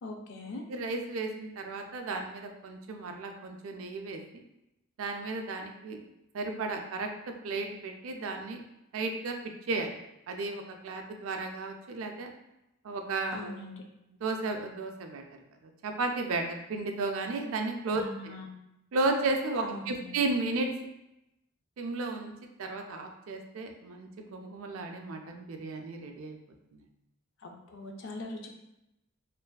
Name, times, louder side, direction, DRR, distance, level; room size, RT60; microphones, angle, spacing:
voice 1, 0.0-0.6 13.3-13.8 17.9-18.5 19.6-20.1 27.4-28.5, left 2 dB, 60° left, 2 dB, 0.4 m, -41 dB
voice 2, 0.7-4.2 5.0-6.0 6.3-7.1 7.4-8.6 8.9-9.4 9.7-10.0 10.3-12.3 12.8-13.6 14.2-15.2 15.8-18.3 18.9-20.7 21.8-22.3 22.6-26.4 26.7-26.8, right 3 dB, 70° right, 4 dB, 0.3 m, -33 dB
2.5 x 2.3 x 2.2 m, 0.88 s
head